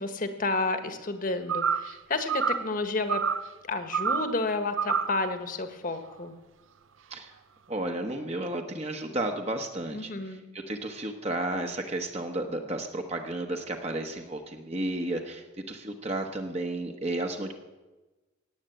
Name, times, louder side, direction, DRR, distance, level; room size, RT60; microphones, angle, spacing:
voice 1, 0.0-3.2 3.7-6.3 9.9-10.5, left 3 dB, 45° left, 8 dB, 1.4 m, -31 dB
sound of bird, 1.5-1.9 2.3-2.7 3.1-3.5 3.9-4.3 4.8-5.2, right 6 dB, 90° right, 0.7 m, -28 dB
voice 2, 7.7-17.5, right 1 dB, 35° right, 3 dB, 1.2 m, -33 dB
18.0 x 8.2 x 7.9 m, 1.1 s
head